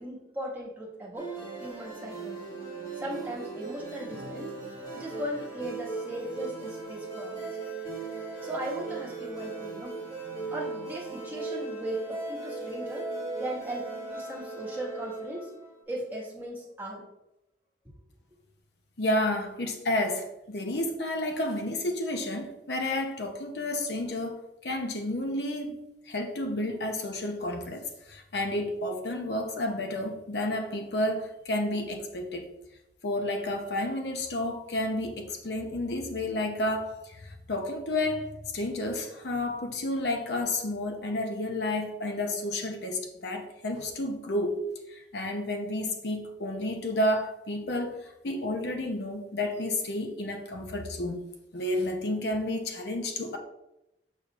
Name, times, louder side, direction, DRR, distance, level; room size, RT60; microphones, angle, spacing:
voice 1, 0.0-1.3 1.6-2.6 2.9-4.6 4.9-7.6 8.4-10.0 10.5-13.1 13.4-15.5 15.9-17.0, right 1 dB, 10° right, -5 dB, 1.6 m, -38 dB
sound 1, 1.1-15.7, right 3 dB, 25° left, 2.5 m, -38 dB
voice 2, 19.0-32.5 33.0-51.3 51.5-53.4, left 1 dB, 70° left, 3 dB, 0.8 m, -31 dB
6.9 x 6.3 x 2.4 m, 0.88 s
head